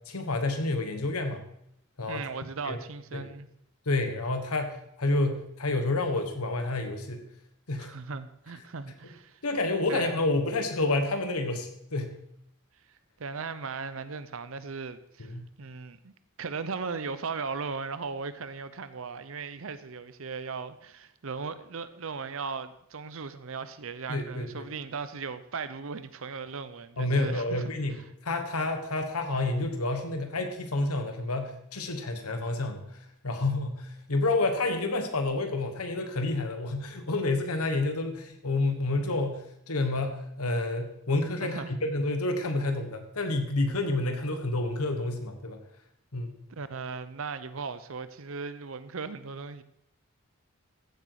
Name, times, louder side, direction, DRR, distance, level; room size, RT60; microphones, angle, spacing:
voice 1, 0.1-1.5 2.0-2.3 2.6-2.8 3.1-3.3 3.8-7.3 7.7-7.9 9.4-12.2 15.2-15.5 24.1-24.7 27.0-32.8 33.2-45.6 46.1-46.3, left 2 dB, 85° left, 1.5 m, -29 dB
voice 2, 2.1-3.5 7.8-9.4 9.9-10.2 13.2-16.1 16.4-27.6 27.9-28.0 41.4-41.7 46.5-49.6, right 5 dB, 65° right, 0.7 m, -37 dB
15.0 x 8.1 x 4.8 m
head